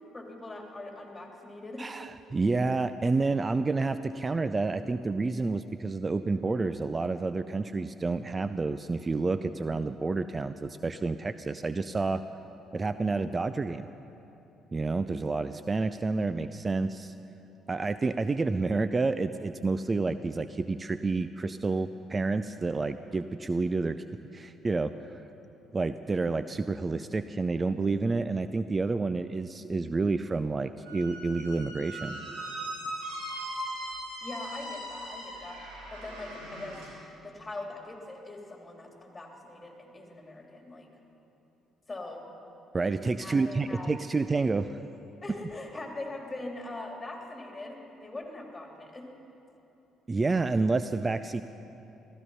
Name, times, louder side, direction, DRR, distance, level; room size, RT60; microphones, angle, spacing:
voice 1, 0.1-1.9 34.2-35.6 35.9-36.8 37.2-40.9 41.9-42.2 43.2-43.9 45.2-49.0, left 2 dB, 20° left, 1 dB, 3.1 m, -41 dB
voice 2, 1.8-12.2 12.7-13.8 14.7-17.1 17.7-24.0 24.3-25.2 25.7-32.2 42.7-44.8 50.1-51.4, right 3 dB, 30° right, 12 dB, 0.5 m, -29 dB
Squeak, 30.8-36.9, right 1 dB, 85° right, 4.4 m, -39 dB
15.0 x 15.0 x 5.6 m, 2.9 s
hypercardioid pair, 55°, 0 cm